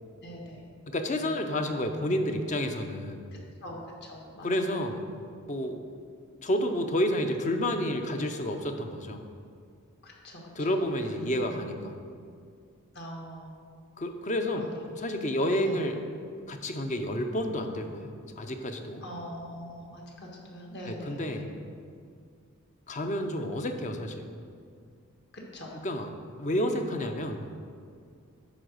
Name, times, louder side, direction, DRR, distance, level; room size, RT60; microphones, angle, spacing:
voice 1, 0.2-0.6 3.6-4.7 10.0-10.7 11.0-11.5 12.9-13.6 14.5-14.9 15.6-15.8 19.0-21.5 25.3-25.8, equal, 50° left, -1 dB, 1.5 m, -43 dB
voice 2, 0.9-3.3 4.4-5.0 5.5-5.8 6.4-9.2 10.6-11.9 14.0-14.7 15.0-16.0 16.5-19.0 20.8-21.5 22.9-24.3 25.7-26.1 26.4-27.4, left 1 dB, 35° left, 6 dB, 0.6 m, -30 dB
10.0 x 3.9 x 6.4 m, 2.3 s
head